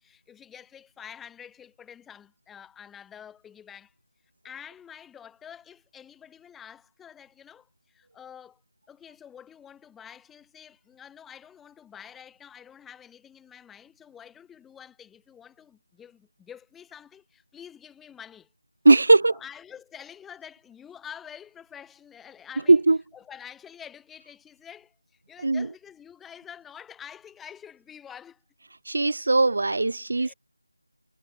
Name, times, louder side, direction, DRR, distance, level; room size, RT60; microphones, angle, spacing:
voice 1, 0.0-3.9 4.4-8.6 8.9-18.5 19.3-22.8 23.1-28.4 30.2-30.3, left 8 dB, 5° left, 0.7 m, -47 dB
voice 2, 18.9-19.3 22.7-23.0 25.4-25.7 28.9-30.3, right 2 dB, 55° right, 0.4 m, -19 dB
figure-of-eight pair, 175°, 0 cm